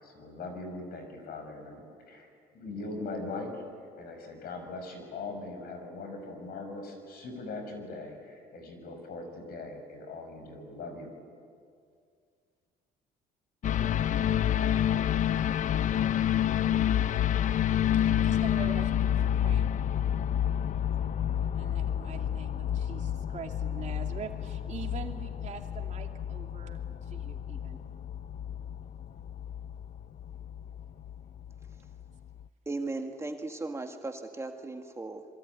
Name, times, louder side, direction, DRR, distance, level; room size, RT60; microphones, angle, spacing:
voice 1, 0.0-3.6 4.0-11.1, left 3 dB, 65° left, 6 dB, 6.4 m, -40 dB
sound 1, 13.6-32.0 32.4-32.5, left 10 dB, 50° left, 0.6 m, -29 dB
voice 2, 17.9-19.6 21.3-27.8, right 7 dB, 45° right, 3 dB, 2.7 m, -44 dB
voice 3, 32.7-35.3, right 2 dB, 15° right, 4 dB, 2.0 m, -37 dB
26.5 x 23.5 x 9.6 m, 2.2 s
cardioid pair, 110°, 17 cm